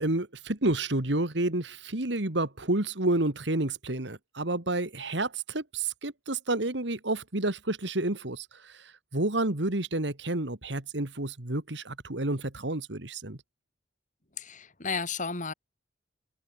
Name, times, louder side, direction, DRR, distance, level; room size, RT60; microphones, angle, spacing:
voice 1, 0.0-13.4, right 2 dB, 70° right, 2.3 m, -30 dB
voice 2, 14.4-15.5, left 5 dB, 45° left, 4.7 m, -33 dB
head